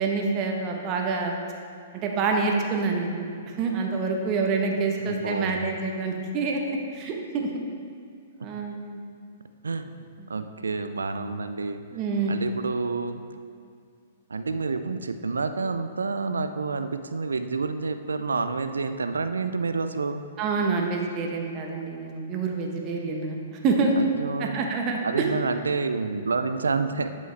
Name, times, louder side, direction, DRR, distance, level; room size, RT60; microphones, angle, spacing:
voice 1, 0.0-1.4 1.9-7.5 8.4-9.0 11.9-12.3 20.4-23.9 24.4-25.3, right 4 dB, 35° right, 1 dB, 1.1 m, -27 dB
voice 2, 5.0-5.6 8.4-8.5 9.6-9.9 10.3-11.8 12.3-13.2 14.3-20.2 24.0-24.6 25.0-27.1, right 4 dB, 80° right, 9 dB, 0.4 m, -28 dB
11.0 x 5.3 x 3.3 m, 2.3 s
figure-of-eight pair, 115°, 0 cm